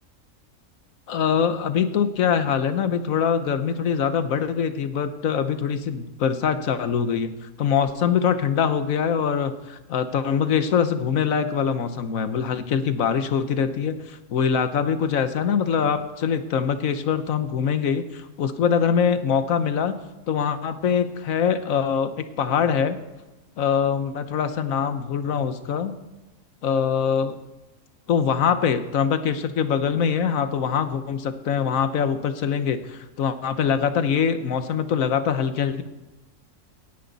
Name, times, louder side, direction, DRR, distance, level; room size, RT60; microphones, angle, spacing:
voice 1, 1.1-20.0 20.3-23.0 23.6-25.9 26.6-27.4 28.1-35.8, left 7 dB, 80° left, 10 dB, 1.3 m, -23 dB
17.5 x 10.0 x 4.1 m, 1.1 s
omnidirectional pair, 1.4 m